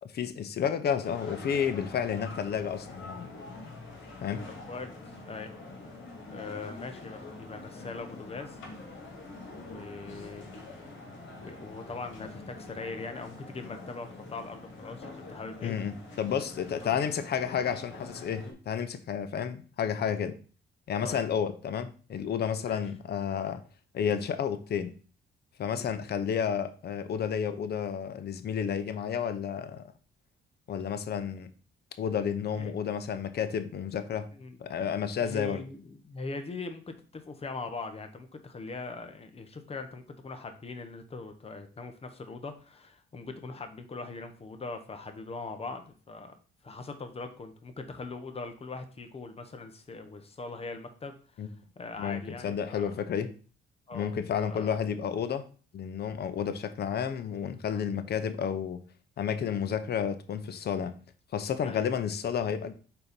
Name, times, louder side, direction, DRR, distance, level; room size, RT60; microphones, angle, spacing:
voice 1, 0.0-3.3 4.2-4.4 15.6-20.4 20.9-23.6 23.9-24.9 25.6-29.9 30.7-31.5 32.0-34.3 34.6-35.6 51.4-51.5 52.0-53.3 53.9-55.4 55.7-58.8 59.2-60.9 61.3-62.7, left 7 dB, 55° left, 11 dB, 0.7 m, -31 dB
sound 1, 1.0-18.5, left 2 dB, 75° left, 2.2 m, -45 dB
voice 2, 4.7-5.5 6.3-8.6 9.5-10.5 11.4-15.8 16.8-16.9 21.0-21.2 22.6-22.8 25.8-26.0 32.5-32.7 34.3-34.6 35.2-46.3 46.6-52.9 53.9-54.1 54.4-54.8 57.7-57.8 61.6-61.9, left 3 dB, 30° left, 7 dB, 1.0 m, -41 dB
4.4 x 4.1 x 5.2 m, 0.39 s
cardioid pair, 90°, 20 cm